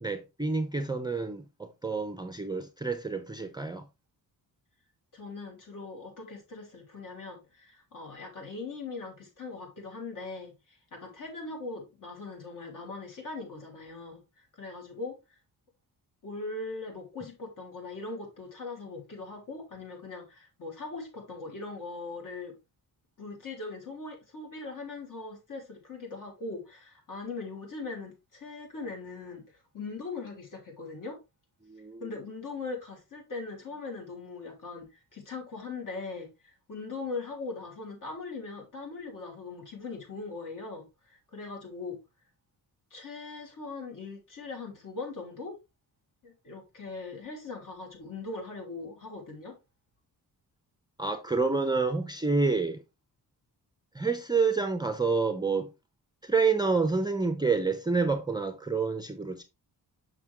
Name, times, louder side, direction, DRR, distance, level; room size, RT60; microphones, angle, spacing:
voice 1, 0.0-3.8 31.7-32.0 51.0-52.8 53.9-55.7 56.2-59.4, right 4 dB, 10° right, 0.5 m, -28 dB
voice 2, 5.1-14.2 14.5-15.2 16.2-22.6 23.2-31.2 32.0-42.0 42.9-45.6 46.2-49.6, left 3 dB, 55° left, 3.4 m, -40 dB
6.5 x 6.0 x 3.4 m
wide cardioid pair, 170°, 38 cm